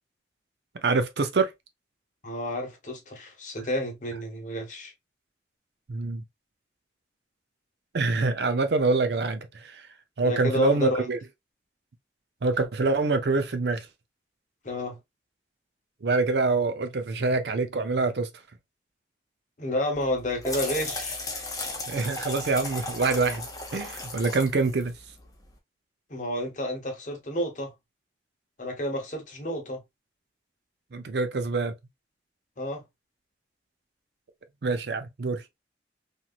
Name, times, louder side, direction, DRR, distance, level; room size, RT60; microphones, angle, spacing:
voice 1, 0.7-1.5 3.6-3.7 5.9-6.2 7.9-9.9 10.2-11.2 12.4-13.9 16.0-18.3 21.9-25.0 30.9-31.7 34.6-35.4, right 3 dB, 70° right, 0.5 m, -25 dB
voice 2, 2.2-4.9 10.2-11.0 14.6-15.0 19.6-21.2 26.1-27.7 28.6-29.8 32.6-32.8, left 1 dB, 45° left, 0.9 m, -30 dB
sound 1, 20.0-25.5, left 2 dB, 20° left, 0.7 m, -36 dB
3.0 x 2.6 x 2.3 m
head